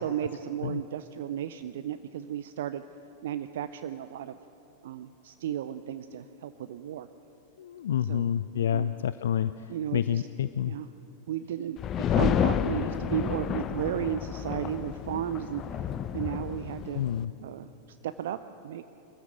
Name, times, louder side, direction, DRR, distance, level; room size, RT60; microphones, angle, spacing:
voice 1, 0.0-2.8 3.2-4.4 4.8-7.1 8.0-8.3 8.7-8.9 9.7-10.2 10.7-10.9 11.3-17.0 17.4-18.8, right 10 dB, 60° right, 11 dB, 0.5 m, -34 dB
voice 2, 7.6-10.7 16.9-17.3, left 9 dB, 60° left, 14 dB, 0.4 m, -29 dB
sound 1, 11.8-17.2, left 8 dB, 30° left, 0.7 m, -30 dB
21.5 x 14.5 x 9.1 m, 3.0 s
figure-of-eight pair, 90°, 0 cm